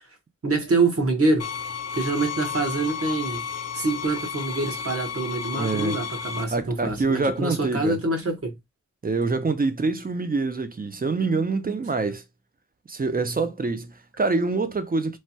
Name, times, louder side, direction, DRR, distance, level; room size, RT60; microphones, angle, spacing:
voice 1, 0.4-1.5 1.9-3.4 3.7-8.5, right 3 dB, 45° right, 1.1 m, -25 dB
sound 1, 1.4-6.4, left 7 dB, 55° left, 0.4 m, -32 dB
voice 2, 5.6-6.0 6.5-8.0 9.0-12.2 12.9-15.2, right 3 dB, 30° right, 0.4 m, -25 dB
3.2 x 2.2 x 2.7 m
wide cardioid pair, 90°, 31 cm